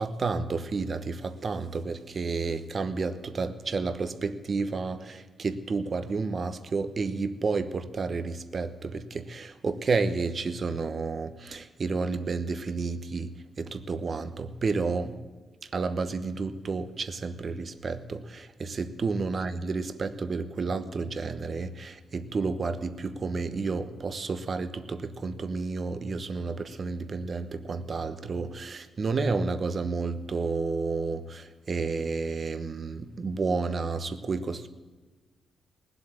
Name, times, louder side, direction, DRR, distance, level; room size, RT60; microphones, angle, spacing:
voice 1, 0.0-13.3 13.6-15.2 15.7-34.7, right 4 dB, 40° right, 1.1 m, -31 dB
20.0 x 8.1 x 8.8 m
wide cardioid pair, 135°, 0 cm